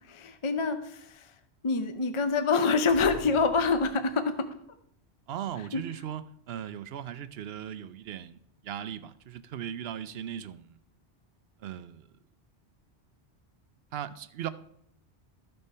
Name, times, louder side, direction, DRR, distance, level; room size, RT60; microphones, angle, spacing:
voice 1, 0.1-1.3 1.6-4.5 5.7-5.8, left 4 dB, 35° left, 9 dB, 0.6 m, -26 dB
sound 1, 2.9-4.5, right 3 dB, 50° right, 1.1 m, -45 dB
voice 2, 5.3-8.4 8.6-10.8 11.6-12.0 13.9-14.5, right 9 dB, 70° right, 14 dB, 0.8 m, -38 dB
13.0 x 4.5 x 5.4 m, 0.72 s
omnidirectional pair, 1.1 m